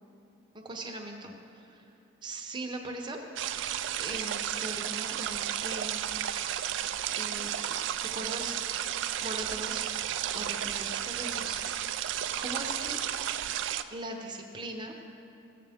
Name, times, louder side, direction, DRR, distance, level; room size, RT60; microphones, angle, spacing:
voice 1, 0.5-1.8 2.2-3.3 4.0-6.1 7.1-7.8 8.1-8.8 9.2-9.9 10.3-11.6 12.4-13.0 13.9-14.9, right 2 dB, 20° right, 2 dB, 0.8 m, -39 dB
sound 1, 3.4-13.8, right 11 dB, 60° right, 0.3 m, -33 dB
15.5 x 7.6 x 3.5 m, 2.8 s
head